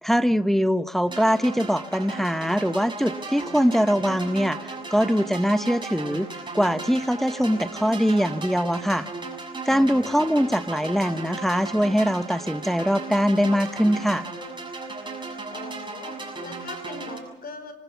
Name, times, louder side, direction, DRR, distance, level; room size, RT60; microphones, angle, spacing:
voice 1, 0.0-4.6 4.9-6.3 6.5-9.1 9.7-14.2, equal, ahead, 13 dB, 0.7 m, -22 dB
sound 1, 1.1-17.2, right 3 dB, 25° right, 6.6 m, -36 dB
voice 2, 15.5-17.7, left 3 dB, 50° left, 10 dB, 4.6 m, -40 dB
25.5 x 19.0 x 7.0 m, 1.0 s
cardioid pair, 90°, 20 cm